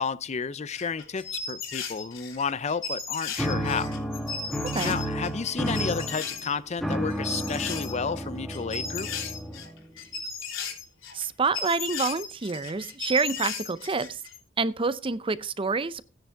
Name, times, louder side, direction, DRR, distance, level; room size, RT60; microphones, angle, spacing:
voice 1, 0.0-3.9 4.8-9.3, left 5 dB, 35° left, 0.5 m, -31 dB
sound 1, 0.7-6.5 6.7-8.2 8.5-14.4, left 5 dB, 85° left, 3.2 m, -36 dB
sound 2, 3.4-9.9, equal, ahead, 1.3 m, -32 dB
voice 2, 11.1-14.2 14.6-16.0, right 4 dB, 25° right, 0.6 m, -27 dB
14.5 x 10.0 x 3.5 m
head